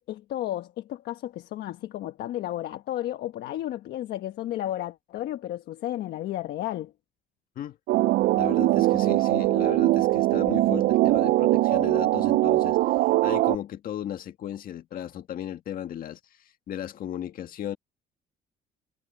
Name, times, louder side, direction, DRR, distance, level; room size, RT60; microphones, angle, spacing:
voice 1, 0.0-6.9, left 13 dB, 75° left, 1.3 m, -33 dB
jazzy groove (consolidated), 7.9-13.6, right 17 dB, 70° right, 0.4 m, -22 dB
voice 2, 8.3-12.8 13.2-16.2 16.7-17.8, left 10 dB, 60° left, 1.7 m, -35 dB
cardioid pair, 110°, 17 cm